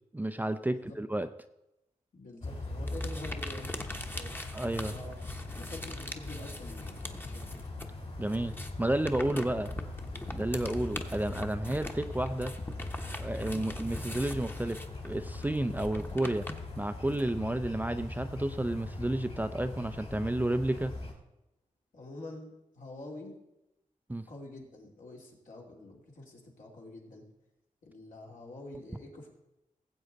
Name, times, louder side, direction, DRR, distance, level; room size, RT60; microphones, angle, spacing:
voice 1, 0.1-1.3 4.5-4.9 8.2-9.7 10.3-12.5 13.2-16.5 16.8-20.9 24.1-24.3, right 1 dB, 10° right, 9 dB, 0.5 m, -31 dB
voice 2, 2.1-3.8 4.1-4.4 4.9-5.2 5.5-7.5 13.5-13.8 21.9-23.3 24.3-27.2 27.8-29.3, left 2 dB, 75° left, -2 dB, 2.7 m, -46 dB
sound 1, 2.4-21.1, left 2 dB, 50° left, 3.0 m, -40 dB
sound 2, 2.9-7.9 8.2-17.3, left 1 dB, 15° left, 1.0 m, -43 dB
18.0 x 7.8 x 4.0 m, 0.90 s
cardioid pair, 70°, 14 cm